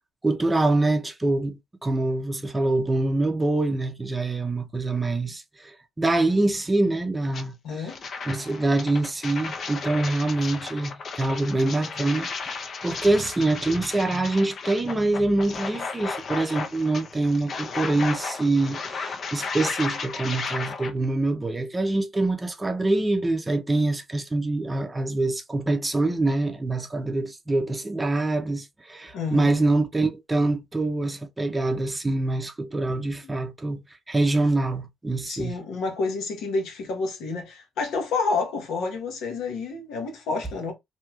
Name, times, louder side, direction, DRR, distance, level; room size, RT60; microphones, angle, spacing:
voice 1, 0.2-7.9 8.3-33.8 34.1-35.6, right 2 dB, 20° right, 0.6 m, -25 dB
sound 1, 7.3-7.4 7.9-20.9, left 4 dB, 55° left, 0.6 m, -34 dB
voice 2, 7.6-8.0 29.1-29.5 33.2-33.3 35.2-40.7, left 4 dB, 85° left, 1.1 m, -29 dB
3.0 x 2.7 x 2.3 m
cardioid pair, 90°, 0 cm